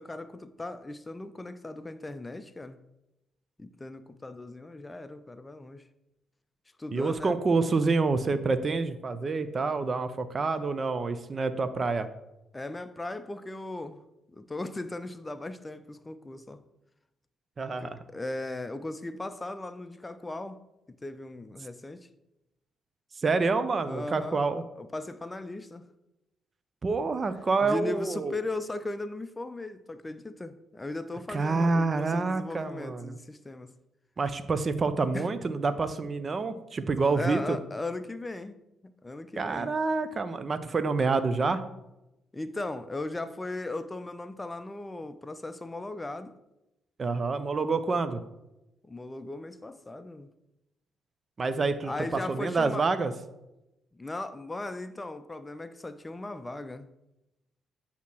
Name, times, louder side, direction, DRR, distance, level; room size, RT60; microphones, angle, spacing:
voice 1, 0.0-2.8 3.6-5.8 6.8-7.4 12.5-14.0 14.3-16.6 17.8-20.6 21.0-22.1 23.8-24.5 24.8-25.9 27.6-33.7 35.1-35.3 36.8-38.6 38.8-39.7 42.3-46.3 48.8-50.3 51.8-52.9 53.9-56.9, left 2 dB, 20° left, 0.5 m, -37 dB
voice 2, 6.9-12.1 17.6-18.0 23.2-24.6 26.8-28.3 31.3-33.2 34.2-37.6 39.4-41.6 47.0-48.2 51.4-53.1, right 4 dB, 35° right, 0.5 m, -27 dB
8.2 x 2.9 x 5.9 m
figure-of-eight pair, 40°, 0 cm